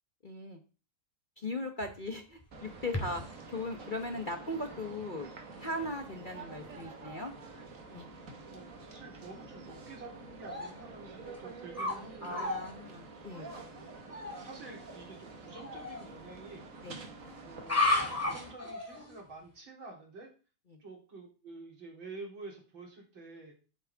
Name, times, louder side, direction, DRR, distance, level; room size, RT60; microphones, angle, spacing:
voice 1, 0.2-0.6 1.4-3.2 3.5-5.3 5.6-7.3 7.9-8.1 12.2-13.5 16.8-17.0 20.7-20.8, left 2 dB, 35° left, 4 dB, 1.0 m, -38 dB
sound 1, 1.8-3.4 4.1-4.2 4.9-5.0 5.6-5.9 6.3-6.4 6.6-6.9 7.4-7.5 10.5-10.7 11.3-12.0 12.2-12.7 14.1-14.4 15.5-16.0 17.6-19.2, left 2 dB, 10° left, 2.1 m, -34 dB
sound 2, 2.5-18.5, right 3 dB, 45° right, 1.9 m, -48 dB
voice 2, 8.1-12.5 14.3-16.7 17.4-17.9 18.2-20.3 20.8-23.5, right 3 dB, 80° right, 0 dB, 4.4 m, -49 dB
12.0 x 8.8 x 3.5 m, 0.35 s
omnidirectional pair, 2.1 m